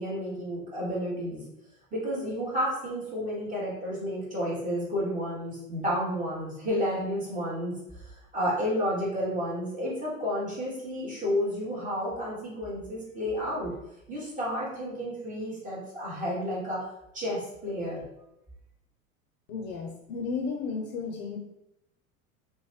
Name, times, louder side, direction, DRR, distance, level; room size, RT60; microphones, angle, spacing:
voice 1, 0.0-1.4 1.9-7.7 8.0-13.7 14.1-16.8 17.1-18.0, equal, 20° right, -6 dB, 1.0 m, -31 dB
voice 2, 19.5-21.4, left 5 dB, 45° left, 1 dB, 0.5 m, -33 dB
2.5 x 2.1 x 3.2 m, 0.85 s
figure-of-eight pair, 80°, 43 cm